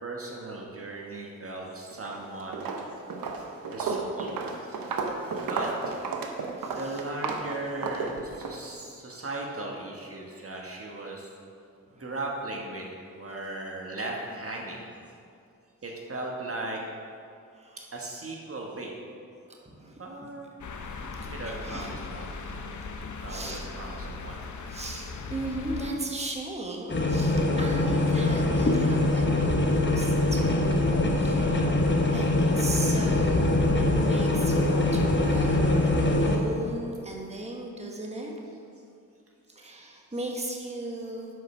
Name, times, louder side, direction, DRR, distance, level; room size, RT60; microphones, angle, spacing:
voice 1, 0.0-2.5 3.7-4.3 4.6-5.0 5.4-6.0 6.7-11.3 12.0-14.9 15.8-16.8 17.9-18.9 19.9-20.5 21.2-22.4 23.2-24.5 35.3-35.4 36.0-36.3 40.1-40.2, right 2 dB, 40° right, -1 dB, 1.3 m, -37 dB
Walk footsteps, 1.9-2.2 2.5-8.6, right 4 dB, 80° right, 0.9 m, -33 dB
voice 2, 6.6-7.0 11.8-12.0 17.5-17.8 19.5-20.0 21.1-22.0 22.8-23.7 24.7-30.8 31.1-31.8 32.1-32.3 32.5-33.6 33.9-35.9 36.2-38.3 39.5-41.3, right 1 dB, 20° right, 0 dB, 1.3 m, -37 dB
sound 1, 20.6-25.9, left 4 dB, 60° left, 0.8 m, -38 dB
sound 2, 26.9-36.4, left 2 dB, 35° left, 1.1 m, -23 dB
7.6 x 5.4 x 5.9 m, 2.4 s
cardioid pair, 55°, 34 cm